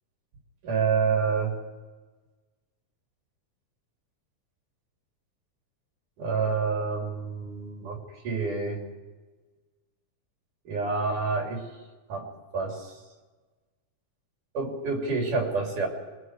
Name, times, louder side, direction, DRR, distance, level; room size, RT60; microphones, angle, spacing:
voice 1, 0.6-1.6 6.2-8.0 8.2-8.8 10.7-11.7 12.1-12.9 14.5-15.9, right 4 dB, 85° right, 2 dB, 4.6 m, -28 dB
24.5 x 22.0 x 4.8 m, 1.3 s
omnidirectional pair, 3.5 m